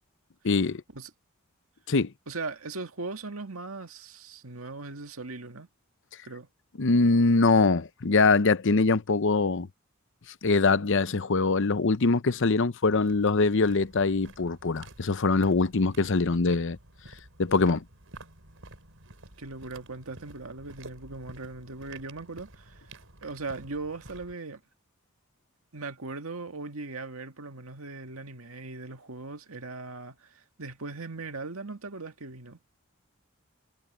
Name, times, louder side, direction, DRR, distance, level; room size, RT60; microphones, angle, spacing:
voice 1, 0.4-0.8 1.9-2.1 6.8-9.7 10.4-16.8 17.4-17.8, left 3 dB, 60° left, 0.8 m, -23 dB
voice 2, 2.3-5.7 6.2-6.5 19.4-22.8 23.2-24.6 25.7-32.6, right 3 dB, 90° right, 1.9 m, -39 dB
sound 1, 12.8-24.3, right 2 dB, 70° right, 7.3 m, -51 dB
head